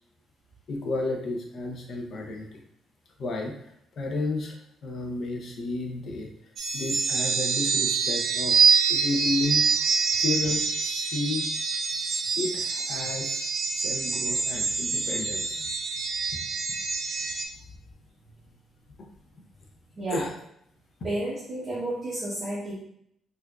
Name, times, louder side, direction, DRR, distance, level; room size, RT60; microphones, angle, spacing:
voice 1, 0.7-2.6 3.2-4.5 4.8-6.3 6.7-8.6 8.9-9.7 10.2-11.5 12.4-13.4 13.7-15.7 20.1-20.3, left 2 dB, 50° left, 2 dB, 0.6 m, -32 dB
sound 1, 6.6-17.4, right 5 dB, 45° right, 0.4 m, -26 dB
voice 2, 20.0-20.3 21.0-22.7, right 1 dB, 20° right, -10 dB, 0.9 m, -32 dB
4.5 x 2.5 x 2.3 m, 0.72 s
cardioid pair, 170°, 0 cm